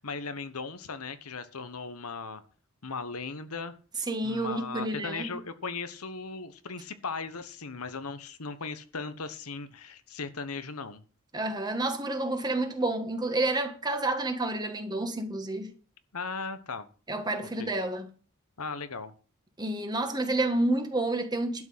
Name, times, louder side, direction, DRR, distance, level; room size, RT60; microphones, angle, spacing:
voice 1, 0.0-2.4 2.8-3.7 4.2-11.0 16.1-16.9 17.6-17.7 18.6-19.1, left 4 dB, 90° left, 1.2 m, -37 dB
voice 2, 4.1-5.4 11.3-15.7 17.1-18.1 19.6-21.6, right 2 dB, 20° right, 1.7 m, -29 dB
12.0 x 6.1 x 8.0 m
head